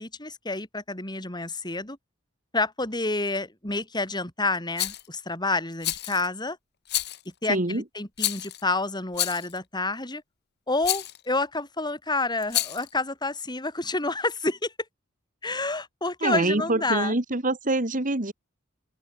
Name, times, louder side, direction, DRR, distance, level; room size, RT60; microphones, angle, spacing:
voice 1, 0.0-2.0 2.5-6.6 7.4-10.2 10.7-14.7 15.4-17.2, left 3 dB, 20° left, 6.0 m, -29 dB
Rattle, 4.8-5.1 5.8-6.3 6.9-7.3 8.2-8.6 9.1-9.6 10.8-11.2 12.4-12.9, left 14 dB, 55° left, 1.3 m, -29 dB
voice 2, 7.5-7.8 16.2-18.3, right 2 dB, 40° right, 2.0 m, -25 dB
head